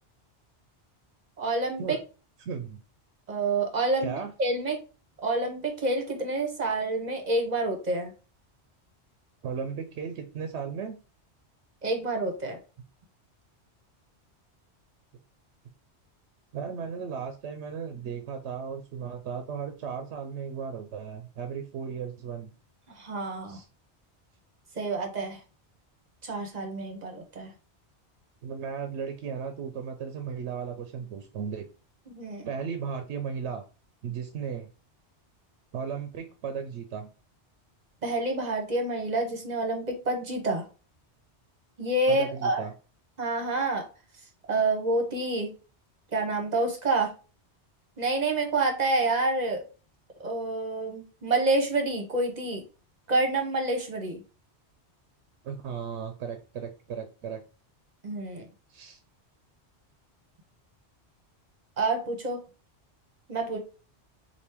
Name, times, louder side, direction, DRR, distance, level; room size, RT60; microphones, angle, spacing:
voice 1, 1.4-2.0 3.3-4.1 4.4-4.8 5.2-8.1 11.8-12.6 22.9-23.6 24.8-25.4 26.2-27.5 32.1-32.5 38.0-40.7 41.8-42.6 43.2-43.8 44.5-45.5 46.1-47.1 48.0-49.6 50.2-52.6 53.1-54.2 58.0-58.5 61.8-62.4 63.3-63.6, right 2 dB, 40° right, 3 dB, 0.9 m, -28 dB
voice 2, 2.4-2.8 4.0-4.3 9.4-11.0 16.5-22.5 23.5-23.7 28.4-31.7 32.4-33.6 34.0-34.7 35.7-37.1 42.1-42.7 55.4-57.4 58.7-59.0, right 6 dB, 80° right, 6 dB, 0.9 m, -35 dB
4.3 x 2.7 x 3.4 m, 0.35 s
omnidirectional pair, 1.2 m